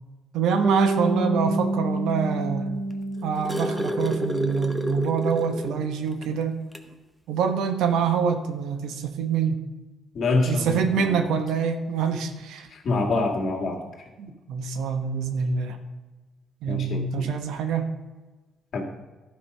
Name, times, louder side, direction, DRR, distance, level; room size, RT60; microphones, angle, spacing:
voice 1, 0.3-2.7 3.2-6.5 7.3-9.6 10.5-12.7 14.2-15.8 16.6-17.9, right 6 dB, 85° right, 7 dB, 1.0 m, -26 dB
Bass guitar, 0.6-4.8, right 2 dB, 35° right, 1.4 m, -28 dB
sound 1, 2.9-5.8 6.2-6.3 6.7-6.9 8.0-8.1, equal, 5° right, 1.0 m, -29 dB
voice 2, 10.1-11.3 12.7-13.8 16.7-17.3 18.7-18.8, left 3 dB, 60° left, 0 dB, 2.0 m, -26 dB
12.0 x 5.3 x 5.4 m, 1.2 s
cardioid pair, 90°, 0 cm